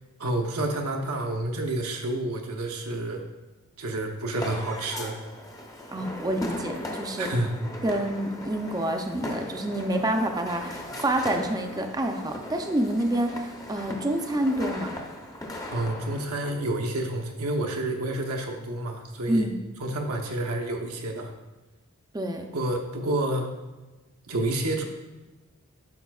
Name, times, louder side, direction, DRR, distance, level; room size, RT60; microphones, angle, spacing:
voice 1, 0.2-3.2 3.8-5.2 7.2-7.5 15.7-19.5 19.8-21.3 22.5-23.6 24.3-24.8, right 1 dB, 85° right, 3 dB, 0.9 m, -29 dB
sound 1, 4.3-16.3, left 1 dB, 15° left, 0.7 m, -38 dB
voice 2, 5.9-7.3 7.8-14.9 19.3-19.6 22.1-22.5, right 1 dB, 15° right, 5 dB, 0.5 m, -28 dB
11.0 x 5.0 x 2.4 m, 1.2 s
head